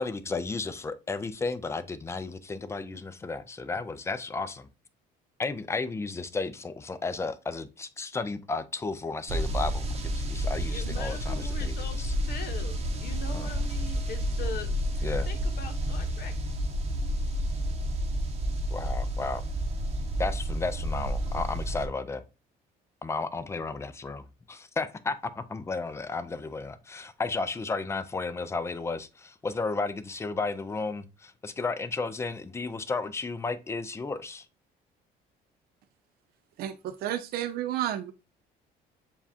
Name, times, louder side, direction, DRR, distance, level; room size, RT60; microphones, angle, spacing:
voice 1, 0.0-4.7 5.4-9.9 10.1-12.1 13.3-13.5 15.0-15.3 18.7-19.4 20.2-22.2 23.0-34.5, left 3 dB, 15° left, 0.4 m, -33 dB
sound 1, 9.3-21.9, equal, 40° right, 0.8 m, -30 dB
voice 2, 10.7-14.7 14.9-16.4, left 6 dB, 65° left, 1.0 m, -41 dB
voice 3, 36.6-38.1, right 12 dB, 65° right, 0.4 m, -31 dB
6.9 x 2.4 x 2.7 m
cardioid pair, 110°, 17 cm